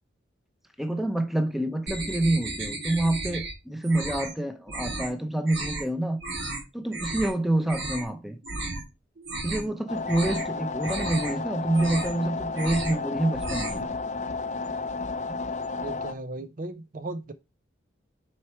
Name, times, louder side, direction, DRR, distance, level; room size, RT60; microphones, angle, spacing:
voice 1, 0.8-6.2 6.7-8.4 9.4-13.8 15.3-15.4, right 1 dB, ahead, 0.8 m, -27 dB
sound 1, 1.9-3.5 3.8-4.3 4.7-5.1 5.4-5.8 6.2-6.6 6.9-7.3 7.6-8.1 8.4-8.8 9.2-9.7 10.0-10.5 10.8-11.3 11.7-12.2 12.5-13.0 13.3-13.9, right 2 dB, 75° right, 3.2 m, -34 dB
sound 2, 9.9-16.1, left 4 dB, 40° left, 0.6 m, -32 dB
voice 2, 15.8-17.3, right 2 dB, 45° right, 0.6 m, -36 dB
6.4 x 4.7 x 4.5 m
head